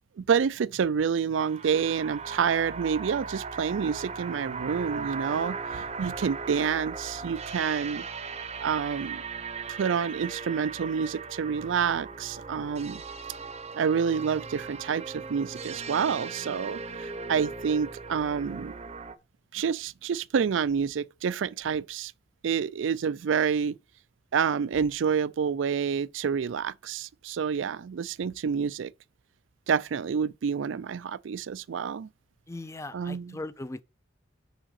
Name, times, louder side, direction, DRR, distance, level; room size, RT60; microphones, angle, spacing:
voice 1, 0.2-8.0 8.6-9.2 9.7-13.0 13.7-18.7 19.5-22.1 22.4-23.8 24.3-28.9 29.7-32.1 32.9-33.4, right 6 dB, 75° right, 0.4 m, -28 dB
sound 1, 1.4-19.1, right 5 dB, 35° right, 0.7 m, -38 dB
voice 2, 32.5-33.8, left 2 dB, 15° left, 0.4 m, -38 dB
6.3 x 4.9 x 6.5 m
head